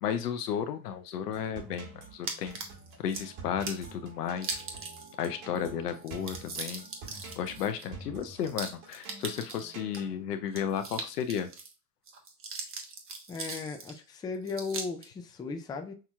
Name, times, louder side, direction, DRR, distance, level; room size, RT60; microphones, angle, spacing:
voice 1, 0.0-2.6 3.0-4.6 5.2-6.9 7.4-11.5, left 8 dB, 90° left, 0.7 m, -33 dB
sound 1, 1.3-10.1, right 3 dB, 70° right, 2.1 m, -48 dB
sound 2, 2.3-3.2 3.6-3.9 4.4-5.3 5.5-5.6 5.9-10.0 10.5-11.7 12.1-14.0 14.5-15.1, right 4 dB, 30° right, 1.0 m, -40 dB
voice 2, 13.3-15.9, left 4 dB, 10° left, 0.3 m, -36 dB
5.9 x 2.9 x 2.3 m
hypercardioid pair, 95°, 46 cm